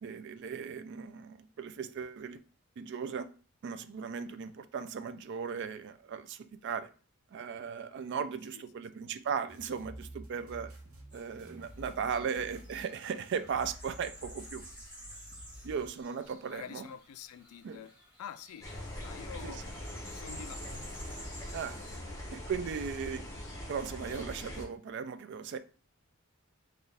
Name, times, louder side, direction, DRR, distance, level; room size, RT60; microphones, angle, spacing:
voice 1, 0.0-2.4 2.8-3.3 3.6-6.9 7.3-10.7 11.1-14.6 15.6-16.9 17.6-17.8 19.4-19.6 21.5-21.8 22.3-23.2 23.7-25.6, right 6 dB, 50° right, 0.3 m, -37 dB
sound 1, 9.5-15.9, equal, 75° right, 0.9 m, -50 dB
sound 2, 11.1-22.0, equal, 10° right, 2.0 m, -53 dB
voice 2, 12.0-12.4 16.5-18.7 19.0-19.6 20.1-20.9 21.3-21.5 21.9-22.1 23.4-23.5, left 8 dB, 80° left, 0.3 m, -48 dB
sound 3, 18.6-24.7, left 1 dB, 15° left, 0.9 m, -42 dB
4.3 x 2.4 x 3.3 m
head